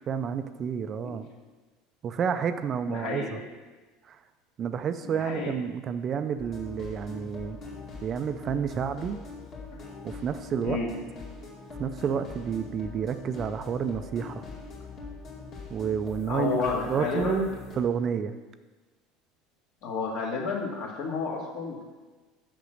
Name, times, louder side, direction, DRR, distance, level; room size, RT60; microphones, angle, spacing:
voice 1, 0.1-1.3 2.0-3.4 4.0-4.2 4.6-7.6 8.0-9.2 10.0-10.8 11.8-14.4 15.7-16.6 16.9-17.5 17.8-18.4, right 7 dB, 30° right, 10 dB, 0.4 m, -30 dB
voice 2, 2.9-3.4 5.1-5.5 9.7-9.8 10.6-10.9 16.3-17.5 19.8-21.8, left 4 dB, 55° left, 0 dB, 1.8 m, -31 dB
sound 1, 6.4-17.8, left 3 dB, 40° left, 2.3 m, -43 dB
6.7 x 6.0 x 6.5 m, 1.3 s
cardioid pair, 155°, 0 cm